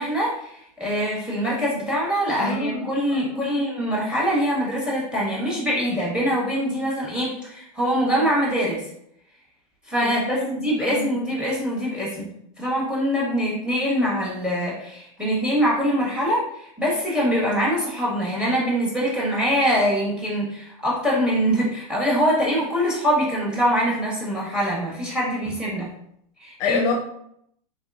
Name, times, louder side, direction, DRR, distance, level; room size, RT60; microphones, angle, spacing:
voice 1, 0.0-8.9 9.9-12.3 12.6-25.9 26.4-26.9, equal, 5° right, -5 dB, 1.5 m, -24 dB
voice 2, 2.4-3.5 10.0-10.5 10.8-11.2 26.6-26.9, left 5 dB, 45° left, 3 dB, 0.5 m, -27 dB
3.5 x 3.3 x 2.5 m, 0.72 s
supercardioid pair, 140°, 19 cm